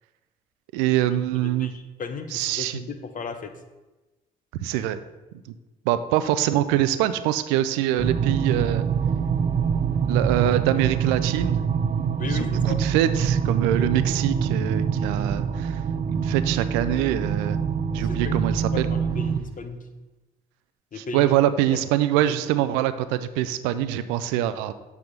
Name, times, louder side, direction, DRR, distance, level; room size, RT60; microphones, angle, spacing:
voice 1, 0.7-1.7 2.3-2.8 4.6-5.0 5.9-8.9 10.0-11.6 12.2-15.8 16.1-17.6 17.9-18.9 21.0-24.7, right 12 dB, 85° right, 13 dB, 0.4 m, -24 dB
voice 2, 1.4-3.5 12.2-12.8 13.8-13.9 18.0-18.4 18.7-19.8 20.9-21.3 21.7-21.8 22.2-22.3, left 4 dB, 45° left, 8 dB, 0.9 m, -35 dB
sound 1, 8.0-19.4, right 7 dB, 40° right, 0.6 m, -25 dB
8.0 x 3.5 x 5.3 m, 1.1 s
hypercardioid pair, 50°, 19 cm